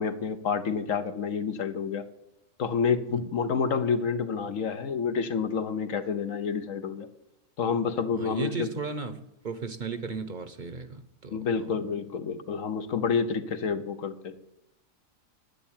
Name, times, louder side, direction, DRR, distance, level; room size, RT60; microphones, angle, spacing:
voice 1, 0.0-2.0 2.6-7.1 7.6-8.7 11.3-14.3, left 6 dB, 75° left, 10 dB, 1.4 m, -29 dB
voice 2, 8.1-11.8, right 4 dB, 40° right, 10 dB, 0.9 m, -36 dB
10.5 x 8.5 x 8.7 m, 0.90 s
omnidirectional pair, 1.4 m